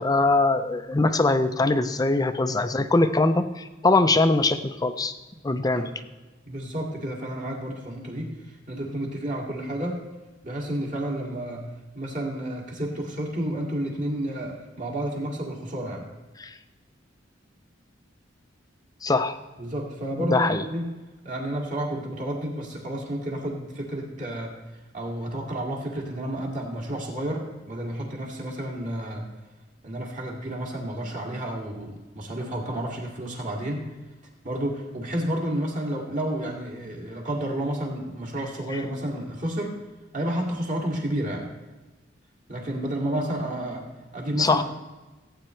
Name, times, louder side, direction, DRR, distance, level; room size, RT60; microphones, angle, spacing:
voice 1, 0.0-5.1 5.4-5.8 16.4-16.5 19.0-19.4 20.2-20.6 38.7-38.8 44.4-44.6, left 2 dB, 20° left, 10 dB, 0.5 m, -22 dB
voice 2, 6.5-10.0 10.4-11.7 11.9-16.1 19.6-21.0 21.2-24.5 24.9-29.3 29.8-33.9 34.4-39.8 40.1-41.5 42.5-43.9 44.1-44.6, right 1 dB, 45° right, -1 dB, 2.3 m, -31 dB
16.5 x 8.8 x 3.2 m, 1.2 s
head